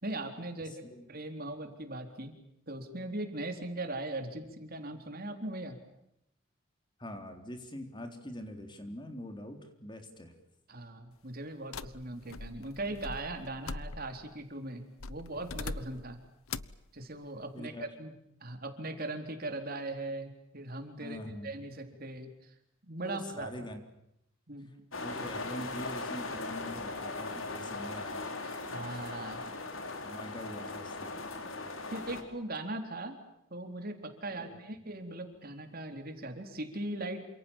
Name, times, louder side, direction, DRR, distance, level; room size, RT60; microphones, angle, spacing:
voice 1, 0.0-2.3 2.7-5.8 10.7-16.2 16.9-18.1 18.4-22.5 22.8-23.5 24.5-24.7 28.4-29.4 31.9-33.2 33.5-37.3, right 2 dB, 45° right, 6 dB, 3.9 m, -39 dB
voice 2, 0.6-1.1 7.0-10.3 17.5-17.9 21.0-21.5 23.0-23.8 25.0-28.4 30.0-31.1 34.3-34.6, left 1 dB, 20° left, 5 dB, 3.8 m, -44 dB
sound 1, 11.7-14.3 15.0-16.1 16.5-16.8, left 3 dB, 90° left, 1.0 m, -42 dB
sound 2, 24.9-32.2, left 3 dB, 70° left, 4.6 m, -39 dB
29.0 x 27.0 x 7.4 m, 0.81 s
head